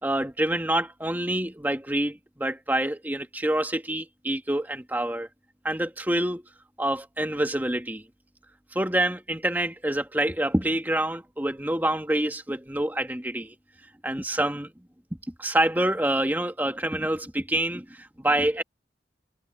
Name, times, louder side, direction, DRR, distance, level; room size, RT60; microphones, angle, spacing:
voice 1, 0.0-5.3 5.6-6.4 6.8-8.0 8.7-13.6 14.0-14.7 15.4-18.6, right 1 dB, 10° right, 1.9 m, -27 dB
head